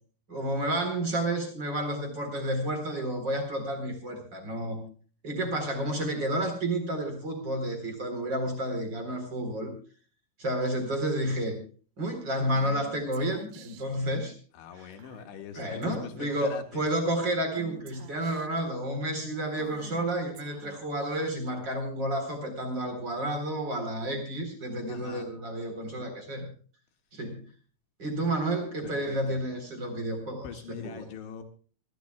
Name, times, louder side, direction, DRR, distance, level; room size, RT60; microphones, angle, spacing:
voice 1, 0.3-4.8 5.2-9.7 10.4-11.6 12.0-14.3 14.7-14.9 15.6-26.4 27.1-27.4 28.0-31.0, right 1 dB, 25° right, 5 dB, 3.8 m, -31 dB
Female speech woman speaking / Whispering, 12.5-14.0 15.0-15.4 15.8-16.0 16.3-16.8 17.6-18.6 19.6-21.5, right 7 dB, 70° right, 3.1 m, -49 dB
voice 2, 14.5-16.8 24.9-25.3 28.8-29.4 30.4-31.4, left 7 dB, 70° left, 5 dB, 4.0 m, -42 dB
26.5 x 13.5 x 2.3 m, 0.40 s
omnidirectional pair, 5.8 m